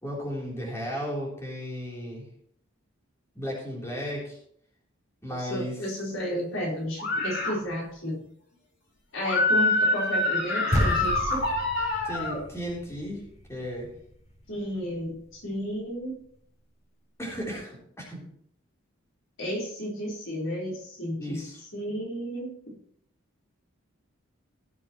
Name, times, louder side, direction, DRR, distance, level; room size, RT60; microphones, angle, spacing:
voice 1, 0.0-2.2 3.4-4.4 5.2-5.8 12.0-13.2 13.5-13.9 17.2-18.2 21.2-21.6, equal, 15° left, -4 dB, 3.5 m, -34 dB
voice 2, 5.3-8.2 9.1-11.5 14.5-16.2 19.4-21.4 21.7-22.7, equal, 75° left, -3 dB, 4.1 m, -32 dB
sound 1, 7.0-7.5 9.2-12.4, left 2 dB, 55° left, 4.4 m, -25 dB
sound 2, 10.7-15.2, equal, 35° left, 4.2 m, -32 dB
17.5 x 7.5 x 3.1 m, 0.65 s
head